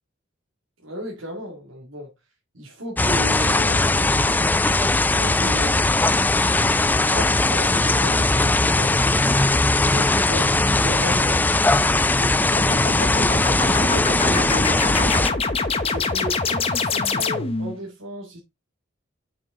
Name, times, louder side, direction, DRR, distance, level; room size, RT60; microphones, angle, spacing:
voice 1, 0.8-2.1 2.5-4.1 4.9-6.5 6.9-11.5 11.9-13.4 13.6-15.4 15.8-18.4, equal, 85° right, 2.2 m, -34 dB
sound 1, 3.0-15.3, left 2 dB, 10° left, 0.3 m, -19 dB
sound 2, 12.6-17.8, left 3 dB, 30° left, 0.9 m, -25 dB
6.6 x 6.3 x 3.6 m
head